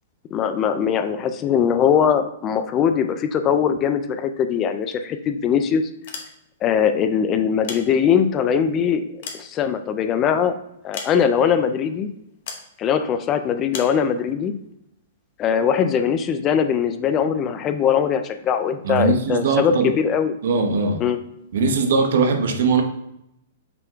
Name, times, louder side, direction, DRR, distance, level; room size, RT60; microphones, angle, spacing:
voice 1, 0.3-5.9 6.6-9.0 9.3-10.5 10.8-12.1 12.8-14.5 15.4-20.4 21.0-21.2, left 7 dB, 30° left, 9 dB, 0.4 m, -21 dB
sound 1, 5.9-6.7 7.4-8.4 8.9-10.1 10.9-11.6 12.5-12.7 13.7-14.0, left 5 dB, 60° left, 0.9 m, -36 dB
voice 2, 18.8-19.9 20.4-21.0 21.5-22.8, right 4 dB, 70° right, 6 dB, 0.7 m, -20 dB
5.7 x 2.2 x 3.7 m, 0.79 s
hypercardioid pair, 135°, 0 cm